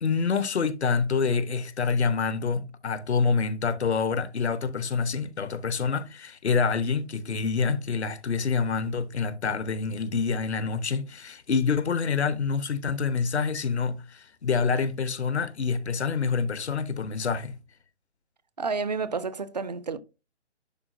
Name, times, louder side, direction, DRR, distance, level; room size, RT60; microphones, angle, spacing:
voice 1, 0.0-17.6, left 5 dB, 65° left, 0.9 m, -27 dB
voice 2, 18.6-20.0, right 4 dB, 40° right, 0.4 m, -30 dB
10.5 x 4.1 x 2.6 m
figure-of-eight pair, 135°, 36 cm